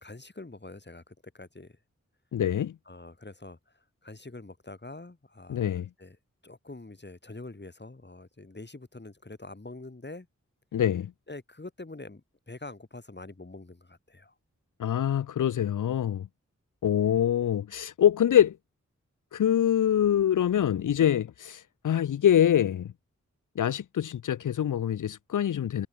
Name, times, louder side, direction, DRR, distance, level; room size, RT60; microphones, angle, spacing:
voice 1, 0.0-1.8 2.9-6.2 6.4-10.3 11.3-14.3, left 2 dB, 35° left, 6.0 m, -45 dB
voice 2, 2.3-2.7 5.5-5.9 10.7-11.1 14.8-16.3 16.8-18.6 19.3-22.9 23.6-25.9, left 10 dB, 80° left, 0.6 m, -25 dB
cardioid pair, 45°, 30 cm